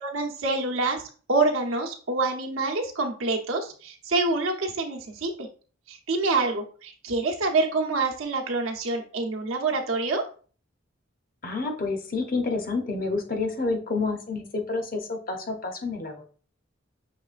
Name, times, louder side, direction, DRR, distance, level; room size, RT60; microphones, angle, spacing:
voice 1, 0.0-1.0 1.3-5.5 5.9-10.2, right 3 dB, 80° right, 2 dB, 0.8 m, -26 dB
voice 2, 11.4-16.2, left 3 dB, 45° left, 4 dB, 0.7 m, -29 dB
5.9 x 3.1 x 2.4 m, 0.41 s
head